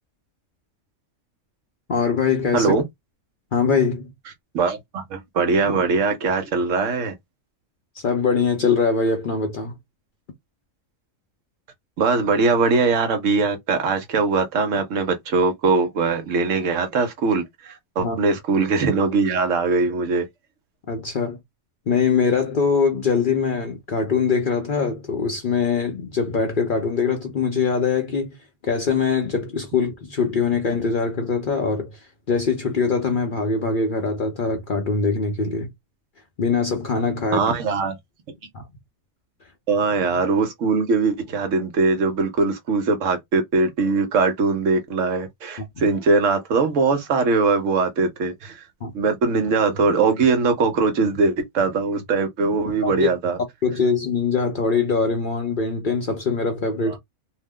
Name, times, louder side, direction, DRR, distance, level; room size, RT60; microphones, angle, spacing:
voice 1, 1.9-2.7 3.5-4.1 8.0-9.8 18.0-18.2 20.9-21.4 21.9-28.4 28.6-32.0 32.3-35.7 36.4-37.5 38.5-38.6 48.8-48.9 52.8-53.1 53.6-57.0, left 5 dB, 50° left, 0.7 m, -22 dB
voice 2, 2.5-2.8 4.5-7.1 12.0-20.3 37.3-38.0 39.7-48.7 48.9-53.4 56.9-57.0, right 4 dB, 65° right, 1.1 m, -21 dB
2.7 x 2.1 x 3.5 m
omnidirectional pair, 1.5 m